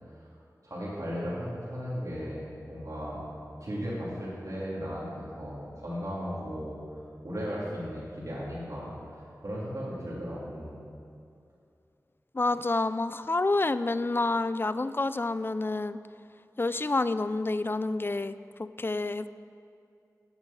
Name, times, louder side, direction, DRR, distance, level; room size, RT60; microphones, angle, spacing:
voice 1, 0.6-3.2 3.6-6.8 7.2-8.9 9.4-10.8, equal, 55° right, -8 dB, 2.8 m, -36 dB
voice 2, 12.3-16.0 16.6-19.3, left 2 dB, 35° left, 14 dB, 0.4 m, -28 dB
8.8 x 7.5 x 7.4 m, 2.5 s
wide cardioid pair, 55°, 7 cm